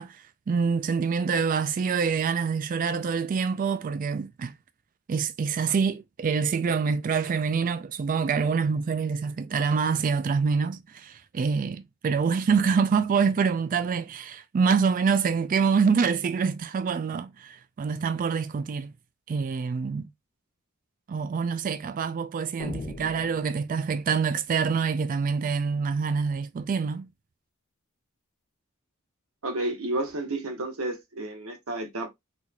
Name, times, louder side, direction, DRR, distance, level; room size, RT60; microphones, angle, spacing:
voice 1, 0.0-4.5 5.1-18.9 19.3-20.1 21.1-27.1, right 5 dB, 40° right, 0.3 m, -26 dB
sound 1, 22.6-24.2, left 2 dB, 35° left, 1.3 m, -39 dB
voice 2, 29.4-32.1, right 2 dB, 75° right, 1.1 m, -31 dB
4.0 x 3.2 x 2.3 m
head